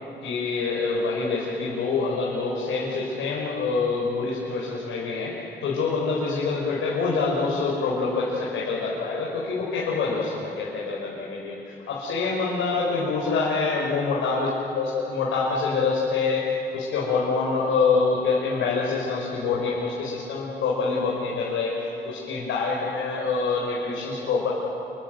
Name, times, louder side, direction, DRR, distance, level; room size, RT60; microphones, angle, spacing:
voice 1, 0.2-14.5 14.8-16.4 16.7-21.8 22.1-24.5, left 4 dB, 85° left, -4 dB, 5.2 m, -26 dB
28.0 x 25.5 x 8.0 m, 3.0 s
cardioid pair, 90°, 20 cm